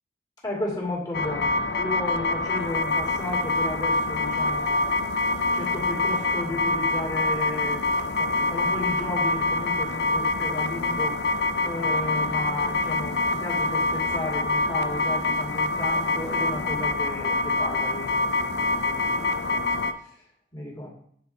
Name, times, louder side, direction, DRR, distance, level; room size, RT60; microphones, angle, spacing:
voice 1, 0.4-5.0 5.5-7.8 8.2-11.2 11.6-19.6 20.5-20.9, left 1 dB, 20° left, -4 dB, 2.5 m, -34 dB
sound 1, 1.1-19.9, left 2 dB, 65° left, 0.5 m, -25 dB
9.0 x 4.3 x 4.2 m, 0.65 s
head